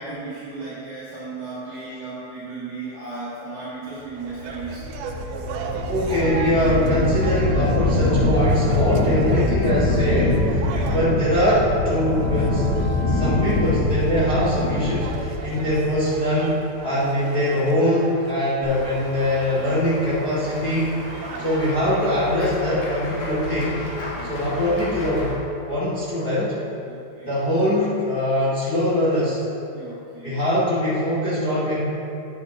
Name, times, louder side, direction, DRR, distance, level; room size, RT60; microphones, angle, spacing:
voice 1, 0.0-4.8 10.7-11.0 15.5-15.7 16.9-17.0 21.3-21.5 24.1-24.5 26.9-27.4 29.7-30.4, right 3 dB, 55° right, -12 dB, 3.2 m, -36 dB
sound 1, 4.2-21.8, right 5 dB, 85° right, 2.5 m, -38 dB
sound 2, 4.4-16.4, left 2 dB, 80° left, 2.9 m, -23 dB
voice 2, 5.9-10.7 10.9-20.9 21.4-23.8 24.3-25.4 25.7-26.5 27.2-29.4 30.2-31.8, equal, 20° left, -10 dB, 1.5 m, -22 dB
Run / Walk footsteps / Bell, 18.6-25.3, left 2 dB, 65° left, 3.0 m, -35 dB
11.0 x 8.6 x 3.0 m, 2.7 s
omnidirectional pair, 4.3 m